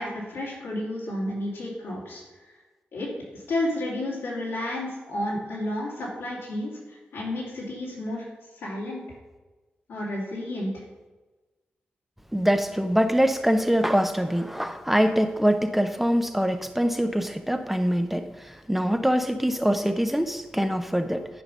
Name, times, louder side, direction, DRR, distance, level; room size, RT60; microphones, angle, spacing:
voice 1, 0.0-2.2 2.9-3.1 3.5-8.3 8.5-9.0 9.9-10.8, left 1 dB, 90° left, -5 dB, 2.9 m, -31 dB
voice 2, 12.3-21.3, equal, 5° right, 7 dB, 0.8 m, -24 dB
9.9 x 5.0 x 5.5 m, 1.2 s
supercardioid pair, 45°, 4 cm